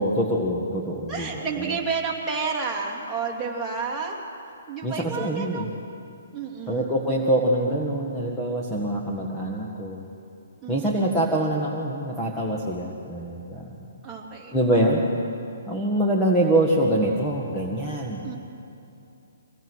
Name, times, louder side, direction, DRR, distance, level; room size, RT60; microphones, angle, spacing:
voice 1, 0.0-1.8 4.8-5.7 6.7-10.0 10.7-13.8 14.5-15.0 15.7-18.3, right 1 dB, 5° left, -4 dB, 1.6 m, -24 dB
voice 2, 1.1-4.2 4.7-5.7 6.3-6.9 10.6-11.2 14.0-14.6 18.2-18.4, right 5 dB, 10° right, -4 dB, 2.8 m, -31 dB
24.5 x 18.0 x 6.3 m, 2.7 s
hypercardioid pair, 160°, 0 cm